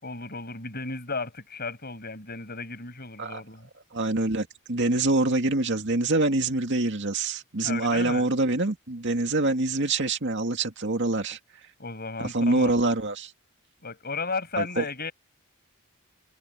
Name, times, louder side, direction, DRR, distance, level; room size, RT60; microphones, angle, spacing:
voice 1, 0.0-3.7 7.6-8.3 11.8-12.7 13.8-15.1, left 4 dB, 45° left, 6.3 m, -34 dB
voice 2, 3.9-11.4 12.2-13.3 14.6-14.8, right 2 dB, 55° right, 2.3 m, -25 dB
head